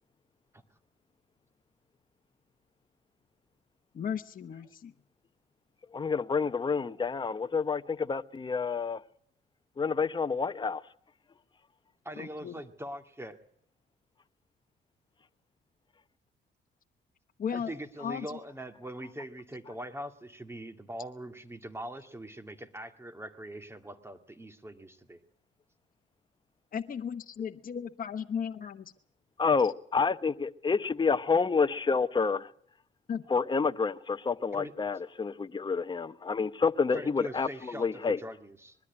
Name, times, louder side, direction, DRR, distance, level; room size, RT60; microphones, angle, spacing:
voice 1, 3.9-4.9 12.2-12.6 17.4-17.7 18.0-18.4 26.7-28.9 33.1-33.2, left 7 dB, 45° left, 1.1 m, -35 dB
voice 2, 5.9-9.0 9.8-10.8 29.4-32.5 33.3-38.2, left 5 dB, 25° left, 0.8 m, -28 dB
voice 3, 12.1-13.4 17.5-25.2 34.5-34.7 36.9-38.8, right 1 dB, 10° right, 2.1 m, -42 dB
21.0 x 13.0 x 9.8 m
cardioid pair, 90°, 20 cm